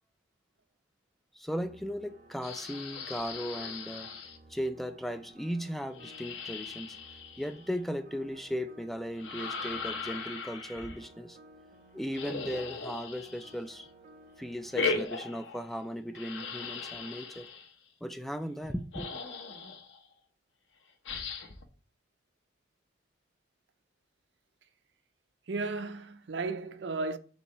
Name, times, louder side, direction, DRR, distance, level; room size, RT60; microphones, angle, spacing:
voice 1, 1.3-4.1 4.5-7.0 7.4-11.4 11.9-13.9 14.4-17.5 18.0-19.1, equal, ahead, 0.3 m, -37 dB
sound 1, 1.5-15.0, right 1 dB, 40° right, 1.0 m, -57 dB
sound 2, 2.4-4.4 5.9-7.8 9.2-11.0 12.1-13.8 14.7-15.8 16.1-17.7 18.6-18.7 18.9-20.0 21.0-21.6, left 4 dB, 80° left, 0.9 m, -38 dB
voice 2, 25.5-27.2, right 3 dB, 70° right, 0.6 m, -34 dB
7.1 x 2.7 x 5.5 m
head